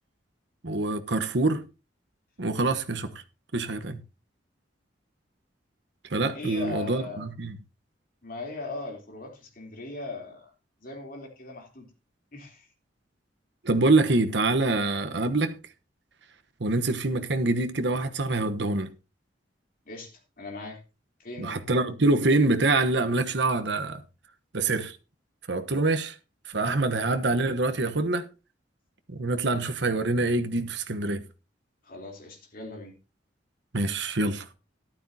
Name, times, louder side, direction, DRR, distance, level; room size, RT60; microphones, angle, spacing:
voice 1, 0.6-1.6 2.4-3.2 3.5-4.0 6.1-7.6 13.6-15.5 16.6-18.9 21.4-24.0 24.5-25.0 25.5-26.1 26.5-28.3 29.1-31.3 33.7-34.4, right 2 dB, 70° right, 1.1 m, -25 dB
voice 2, 6.3-7.3 8.2-10.5 10.8-11.9 12.3-12.7 19.9-20.8 21.2-21.6 31.8-32.9, left 2 dB, 50° left, 3.6 m, -39 dB
13.5 x 12.0 x 2.8 m
head